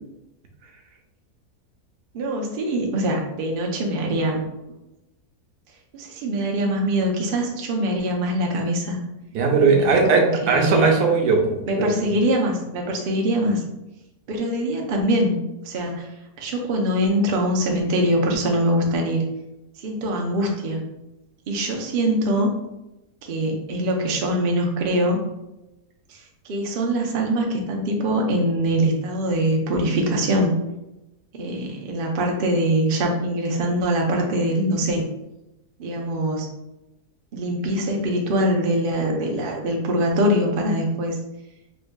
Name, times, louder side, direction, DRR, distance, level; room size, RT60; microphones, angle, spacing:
voice 1, 2.1-4.4 5.9-9.0 9.7-9.8 10.1-11.0 11.7-13.6 14.3-15.4 15.6-16.1 16.4-19.2 19.8-20.8 21.5-22.5 23.2-25.2 26.1-30.5 31.3-35.0 35.8-36.5 37.3-41.2, right 1 dB, 60° right, 1 dB, 0.5 m, -23 dB
voice 2, 9.3-11.9, right 4 dB, 85° right, 1 dB, 1.2 m, -19 dB
4.4 x 2.6 x 2.2 m, 0.93 s
omnidirectional pair, 1.7 m